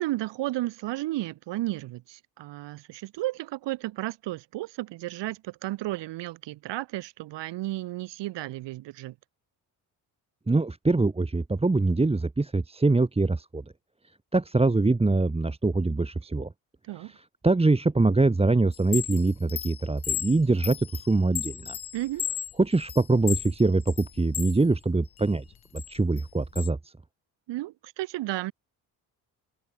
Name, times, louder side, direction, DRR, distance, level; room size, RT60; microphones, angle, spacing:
voice 1, 0.0-9.1 16.9-17.1 21.9-22.3 27.5-28.5, right 17 dB, 70° right, 1.0 m, -33 dB
voice 2, 10.5-13.6 14.3-16.5 17.1-17.2 17.4-21.8 22.6-25.4 25.9-26.9, right 3 dB, 15° right, 1.1 m, -24 dB
Chime, 18.7-24.6 25.0-26.7, left 9 dB, 55° left, 2.0 m, -35 dB
hypercardioid pair, 55°, 45 cm